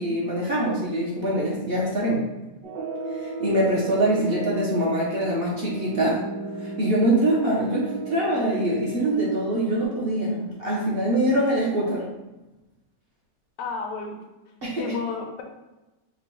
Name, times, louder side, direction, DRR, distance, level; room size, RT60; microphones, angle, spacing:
voice 1, 0.0-2.2 3.2-6.2 6.6-12.1 14.6-14.9, right 1 dB, 55° right, -5 dB, 0.6 m, -24 dB
sound 1, 2.6-9.8, right 3 dB, 75° right, 1.5 m, -34 dB
voice 2, 13.6-14.2 14.8-15.4, left 4 dB, 80° left, 2 dB, 1.3 m, -31 dB
3.8 x 2.2 x 4.4 m, 1.0 s
omnidirectional pair, 1.9 m